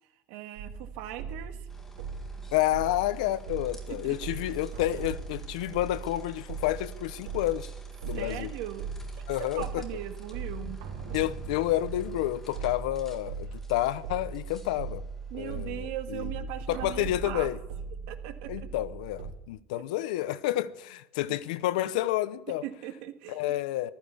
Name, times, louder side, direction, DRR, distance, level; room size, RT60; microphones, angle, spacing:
voice 1, 0.3-1.7 3.9-4.4 8.1-10.8 15.3-17.5 18.1-18.7 21.3-21.4 22.6-23.5, right 12 dB, 60° right, 1.8 m, -40 dB
sound 1, 0.6-19.3, right 5 dB, 80° right, 4.5 m, -39 dB
sound 2, 1.7-16.1, left 2 dB, 10° left, 1.7 m, -55 dB
voice 2, 2.5-7.7 8.0-8.5 9.3-9.8 11.1-15.0 15.3-16.3 16.7-17.6 18.5-22.6 23.3-23.9, left 14 dB, 80° left, 0.8 m, -30 dB
14.5 x 13.5 x 7.1 m
cardioid pair, 170°, 4 cm